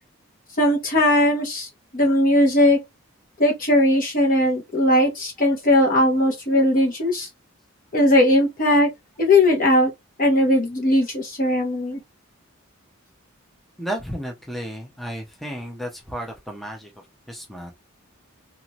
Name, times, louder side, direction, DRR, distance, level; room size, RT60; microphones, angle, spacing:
voice 1, 0.6-1.7 1.9-2.8 3.4-7.3 7.9-8.9 9.2-9.9 10.2-12.0, left 1 dB, 40° left, 1.0 m, -18 dB
voice 2, 13.8-16.9 17.3-17.7, equal, ahead, 0.6 m, -33 dB
2.7 x 2.5 x 2.9 m
head